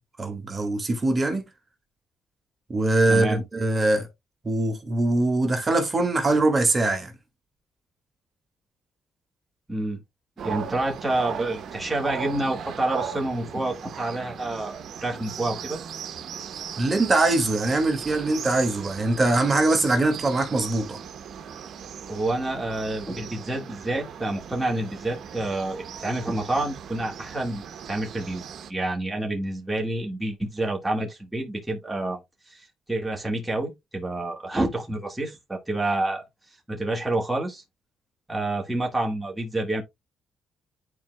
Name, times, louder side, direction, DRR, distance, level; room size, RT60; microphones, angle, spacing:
voice 1, 0.2-1.5 2.7-4.1 4.4-7.1 16.8-21.0, right 2 dB, 30° right, 2.0 m, -22 dB
voice 2, 3.1-3.4 9.7-10.0 10.4-15.8 22.1-28.4 28.7-32.2 32.5-37.6 38.3-39.8, right 2 dB, 10° right, 1.8 m, -28 dB
sound 1, 10.4-28.7, right 8 dB, 65° right, 0.9 m, -38 dB
10.5 x 4.7 x 2.2 m
cardioid pair, 90°, 0 cm